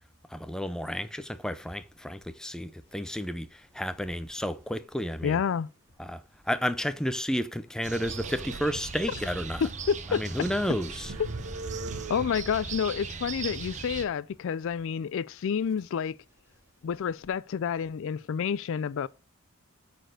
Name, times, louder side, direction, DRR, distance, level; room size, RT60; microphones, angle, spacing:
voice 1, 0.3-5.4 6.0-9.6 10.1-11.1, equal, 5° left, 0.5 m, -32 dB
sound 1, 1.1-17.9, equal, 10° right, 2.0 m, -59 dB
voice 2, 5.2-5.7 9.6-10.2 12.1-16.2 16.8-19.1, left 7 dB, 60° left, 0.3 m, -29 dB
sound 2, 7.8-14.0, right 5 dB, 35° right, 0.7 m, -39 dB
sound 3, 7.9-9.3 9.8-9.9 10.3-12.7, right 3 dB, 75° right, 0.7 m, -41 dB
9.1 x 4.2 x 6.4 m
head